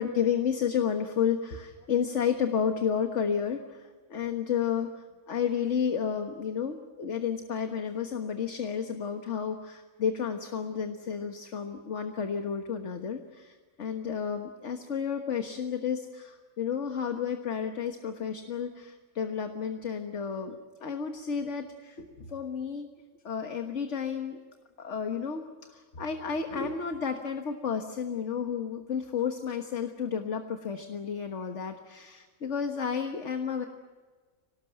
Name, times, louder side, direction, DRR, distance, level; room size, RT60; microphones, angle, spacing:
voice 1, 0.0-22.9 23.2-24.4 24.8-33.6, left 7 dB, 55° left, 5 dB, 1.7 m, -31 dB
24.5 x 19.0 x 9.2 m, 1.4 s
omnidirectional pair, 1.5 m